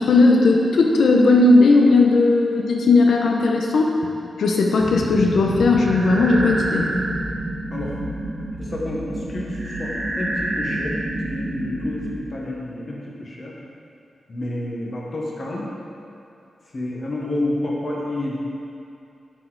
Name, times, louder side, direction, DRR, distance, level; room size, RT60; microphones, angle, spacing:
voice 1, 0.0-3.9 4.4-6.9, left 3 dB, 80° left, 0 dB, 0.8 m, -16 dB
sound 1, 4.8-12.2, right 1 dB, 55° right, 1.4 m, -28 dB
voice 2, 8.6-10.9 11.3-13.5 14.3-15.7 16.7-18.4, left 1 dB, 40° left, -4 dB, 1.1 m, -29 dB
9.2 x 4.2 x 4.0 m, 2.6 s
wide cardioid pair, 140°, 0 cm